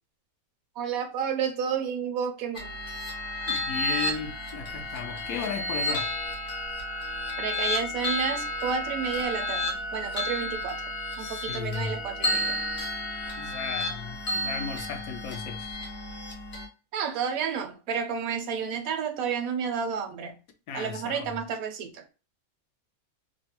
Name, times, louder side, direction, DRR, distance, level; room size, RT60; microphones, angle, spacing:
voice 1, 0.8-2.7 7.4-10.8 11.2-12.6 16.9-20.4 20.7-22.0, right 7 dB, 75° right, 1.0 m, -31 dB
sound 1, 2.5-16.7, left 1 dB, 40° left, 0.9 m, -32 dB
voice 2, 3.5-6.1 11.2-12.0 13.4-15.8 20.7-21.4, left 6 dB, 80° left, 1.0 m, -35 dB
2.8 x 2.1 x 2.8 m
omnidirectional pair, 1.5 m